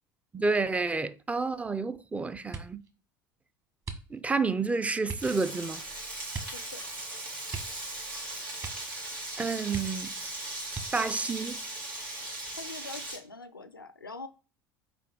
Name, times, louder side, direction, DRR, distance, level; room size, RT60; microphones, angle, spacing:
voice 1, 0.3-2.8 4.1-5.8 9.4-10.1 10.9-11.6, right 4 dB, 10° right, 0.5 m, -29 dB
sound 1, 2.5-2.9 3.8-4.4 5.0-5.4 6.3-6.7 6.9-7.0 7.5-8.2 8.6-9.0 9.3-9.4 9.7-10.2 10.7-11.2 11.9-12.6 12.9-13.3, right 4 dB, 30° right, 1.4 m, -41 dB
Frying (food), 5.1-13.2, right 2 dB, 80° right, 2.1 m, -38 dB
voice 2, 6.5-6.8 12.6-14.3, left 3 dB, 90° left, 0.5 m, -43 dB
5.8 x 4.6 x 3.8 m
figure-of-eight pair, 70°, 11 cm